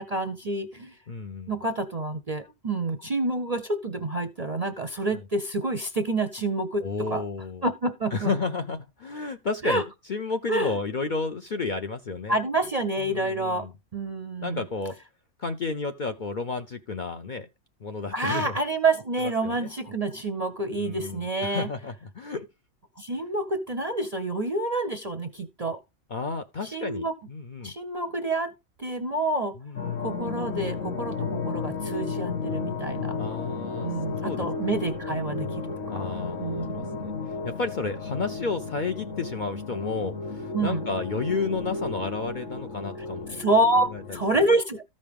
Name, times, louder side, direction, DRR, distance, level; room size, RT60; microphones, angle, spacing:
voice 1, 0.0-1.0 1.5-7.2 7.6-8.3 9.6-9.8 10.5-10.8 12.3-13.7 13.9-14.7 18.1-21.7 23.0-25.8 26.7-27.1 27.6-28.5 28.8-29.6 30.0-33.2 33.8-36.1 36.4-37.1 40.5-40.8 43.3-44.8, right 2 dB, 40° right, 0.5 m, -28 dB
voice 2, 1.1-1.6 6.8-7.6 8.1-9.8 10.1-12.4 13.0-13.7 14.4-15.0 15.4-17.5 17.8-18.5 19.2-19.7 20.8-22.5 26.1-27.7 29.6-30.1 33.2-33.9 34.2-34.5 35.9-37.1 37.4-43.4 43.9-44.0, left 4 dB, 50° left, 0.6 m, -32 dB
sound 1, 29.7-44.3, left 4 dB, 85° left, 2.3 m, -33 dB
14.0 x 5.3 x 3.4 m
omnidirectional pair, 1.3 m